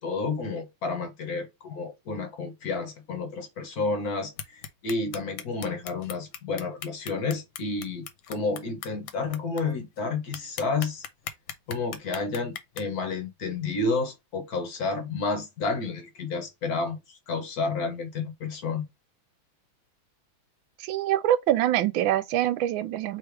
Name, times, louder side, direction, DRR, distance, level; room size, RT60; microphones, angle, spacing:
voice 1, 0.0-11.0 11.7-18.9, left 3 dB, 55° left, 1.3 m, -30 dB
sound 1, 4.4-9.6 10.0-10.1 10.3-12.8, left 9 dB, 80° left, 1.4 m, -37 dB
voice 2, 20.8-23.2, right 12 dB, 85° right, 1.3 m, -24 dB
3.3 x 3.3 x 4.5 m
omnidirectional pair, 2.1 m